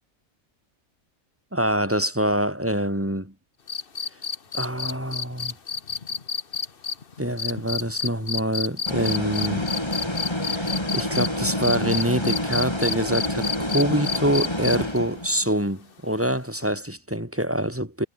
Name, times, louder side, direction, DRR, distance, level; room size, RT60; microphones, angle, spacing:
voice 1, 1.5-3.3 4.5-5.5 7.2-9.6 10.4-18.1, equal, 10° right, 4.7 m, -25 dB
sound 1, 3.7-11.3 11.6-15.0 16.6-16.7, left 5 dB, 40° left, 1.4 m, -29 dB
sound 2, 8.9-15.5, left 1 dB, 20° left, 4.1 m, -28 dB
omnidirectional pair, 1.5 m